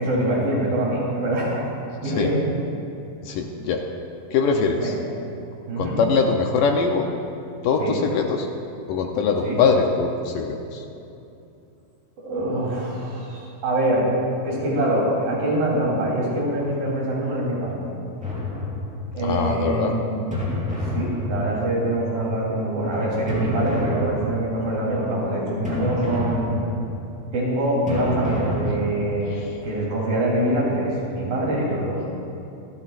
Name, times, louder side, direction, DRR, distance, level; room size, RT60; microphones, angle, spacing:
voice 1, 0.0-1.7 2.0-2.4 4.8-4.9 5.7-6.0 7.8-8.0 9.4-9.6 12.2-14.1 14.4-17.9 19.1-20.3 20.9-26.5 27.3-32.0, right 1 dB, 65° right, -5 dB, 5.2 m, -24 dB
voice 2, 3.2-3.8 4.3-4.9 5.8-7.1 7.6-8.5 8.9-10.9 19.2-19.9 29.3-29.6, left 5 dB, 75° left, 2 dB, 2.2 m, -22 dB
sound 1, 18.2-19.2 20.3-21.9 23.3-24.7 25.6-27.1 27.9-29.3, left 1 dB, ahead, 3.4 m, -28 dB
27.0 x 12.0 x 2.5 m, 2.7 s
omnidirectional pair, 4.3 m